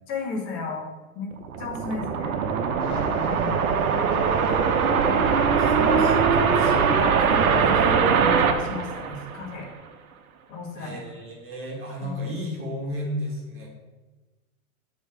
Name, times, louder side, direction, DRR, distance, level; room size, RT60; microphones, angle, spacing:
voice 1, 0.1-0.9 1.2-1.3 1.6-2.4 3.2-3.8 5.0-9.7 10.5-11.0 12.0-12.1, left 3 dB, 45° left, 1 dB, 1.7 m, -34 dB
sound 1, 1.3-9.7, right 6 dB, 75° right, 0.8 m, -22 dB
voice 2, 1.9-2.4 4.2-4.8 10.8-13.7, equal, 30° right, -1 dB, 1.6 m, -34 dB
sound 2, 2.8-8.0, left 4 dB, 85° left, 0.9 m, -39 dB
6.3 x 3.0 x 5.1 m, 1.2 s
hypercardioid pair, 100°, 43 cm